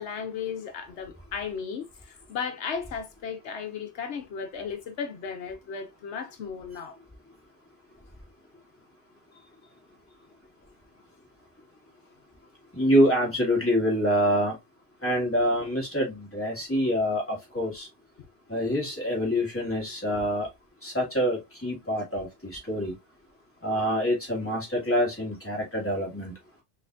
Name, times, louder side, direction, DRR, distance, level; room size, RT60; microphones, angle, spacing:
voice 1, 0.0-7.0 9.3-9.5, left 6 dB, 80° left, 1.0 m, -35 dB
voice 2, 12.7-14.6 15.0-17.9 18.5-20.5 20.8-23.0 23.6-26.3, equal, 10° left, 1.9 m, -26 dB
5.6 x 2.9 x 2.5 m
omnidirectional pair, 1.1 m